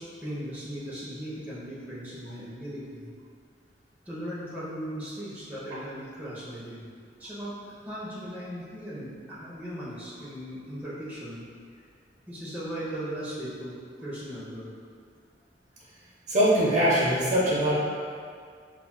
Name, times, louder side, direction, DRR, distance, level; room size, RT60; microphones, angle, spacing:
voice 1, 0.0-3.1 4.1-6.9 7.2-7.5 7.9-11.4 12.3-14.7, equal, 10° right, -9 dB, 0.6 m, -38 dB
voice 2, 16.3-17.7, equal, 45° right, -7 dB, 0.7 m, -22 dB
5.6 x 2.3 x 2.2 m, 2.1 s
head